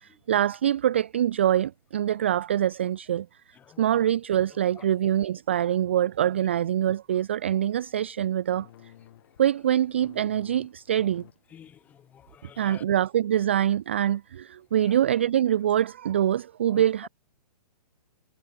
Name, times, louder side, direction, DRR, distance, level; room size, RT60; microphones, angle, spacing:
voice 1, 0.0-3.3 3.8-8.7 9.4-11.2 12.6-17.1, right 11 dB, 20° right, 0.3 m, -24 dB
sound 1, 8.5-11.4 11.8-12.1 12.4-12.6, left 13 dB, 35° left, 5.0 m, -53 dB
voice 2, 11.5-12.8 14.9-15.0 16.7-16.9, left 9 dB, 10° left, 0.9 m, -49 dB
hypercardioid pair, 175°, 19 cm